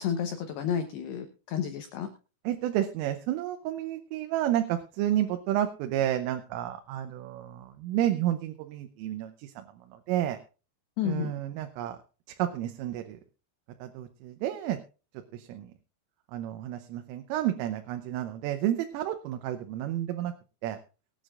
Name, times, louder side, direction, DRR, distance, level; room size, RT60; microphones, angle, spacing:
voice 1, 0.0-2.1 11.0-11.3, left 8 dB, 75° left, 6 dB, 2.6 m, -31 dB
voice 2, 2.5-9.7 10.1-10.4 11.1-12.0 12.4-13.2 13.8-14.8 15.3-15.7 16.3-20.3 20.6-20.8, right 12 dB, 85° right, 6 dB, 3.4 m, -30 dB
23.5 x 9.2 x 2.5 m, 0.34 s
omnidirectional pair, 5.7 m